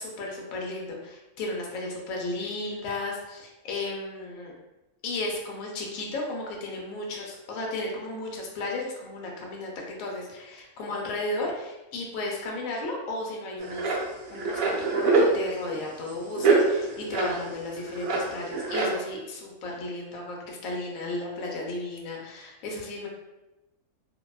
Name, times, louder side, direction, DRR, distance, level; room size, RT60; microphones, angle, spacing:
voice 1, 0.0-4.5 5.0-14.0 14.3-23.1, left 2 dB, 70° left, -1 dB, 0.9 m, -34 dB
sound 1, 13.6-15.3 15.7-15.8 16.1-16.2 16.4-17.4 17.7-18.9, right 3 dB, 70° right, 0.9 m, -24 dB
2.6 x 2.1 x 2.2 m, 1.0 s
omnidirectional pair, 1.6 m